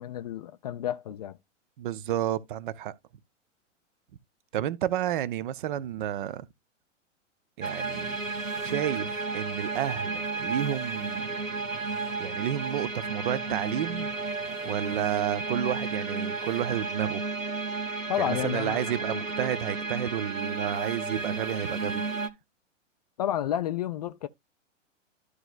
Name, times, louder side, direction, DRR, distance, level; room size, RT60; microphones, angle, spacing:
voice 1, 0.0-1.4 18.1-18.9 23.2-24.3, left 11 dB, 35° left, 0.4 m, -30 dB
voice 2, 1.8-2.9 4.5-6.5 7.6-8.2 8.6-11.3 12.2-14.1 14.6-17.2 18.2-22.0, right 11 dB, 40° right, 0.7 m, -31 dB
sound 1, 7.6-22.3, right 3 dB, 90° right, 1.0 m, -33 dB
13.0 x 4.8 x 2.4 m
figure-of-eight pair, 105°, 38 cm